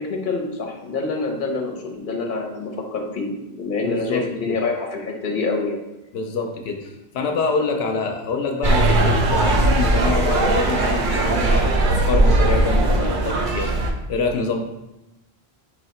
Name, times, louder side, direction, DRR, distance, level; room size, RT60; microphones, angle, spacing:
voice 1, 0.0-5.8, left 3 dB, 55° left, 1 dB, 0.9 m, -26 dB
voice 2, 3.8-4.6 6.1-13.7 14.1-14.6, left 4 dB, 90° left, 3 dB, 0.8 m, -26 dB
sound 1, 8.6-13.9, right 2 dB, 60° right, 0.7 m, -19 dB
4.5 x 2.7 x 4.3 m, 0.93 s
omnidirectional pair, 1.0 m